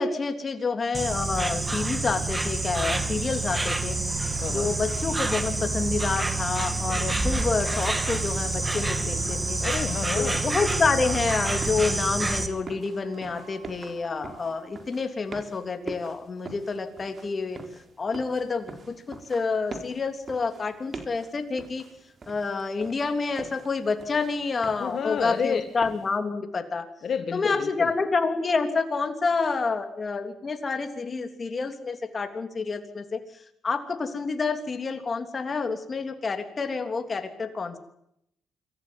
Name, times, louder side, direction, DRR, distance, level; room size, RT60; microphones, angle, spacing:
voice 1, 0.0-4.0 4.5-9.6 10.1-17.6 18.0-21.8 22.3-26.9 27.3-33.2 33.6-37.8, left 4 dB, 35° left, 7 dB, 3.3 m, -28 dB
Insect, 0.9-12.5, right 2 dB, 15° right, 2.3 m, -27 dB
voice 2, 4.4-4.7 9.6-10.4 24.8-25.6 27.0-27.9, left 7 dB, 55° left, 7 dB, 1.8 m, -30 dB
sound 1, 4.8-14.7, right 5 dB, 65° right, 3.8 m, -50 dB
sound 2, 9.0-26.2, right 3 dB, 40° right, 4.2 m, -45 dB
25.5 x 15.0 x 9.5 m, 0.78 s
cardioid pair, 90°, 0 cm